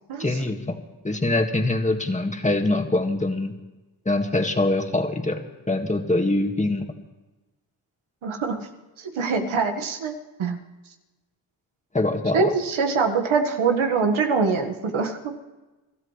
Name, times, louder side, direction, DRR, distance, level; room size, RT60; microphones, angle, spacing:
voice 1, 0.2-0.8 1.0-3.5 4.1-6.8 11.9-12.5, left 2 dB, 15° left, 3 dB, 1.9 m, -24 dB
voice 2, 8.2-8.7 9.0-10.1 10.4-10.6 12.3-15.3, right 5 dB, 75° right, 3 dB, 1.8 m, -23 dB
26.0 x 13.5 x 3.3 m, 1.1 s
cardioid pair, 65°, 48 cm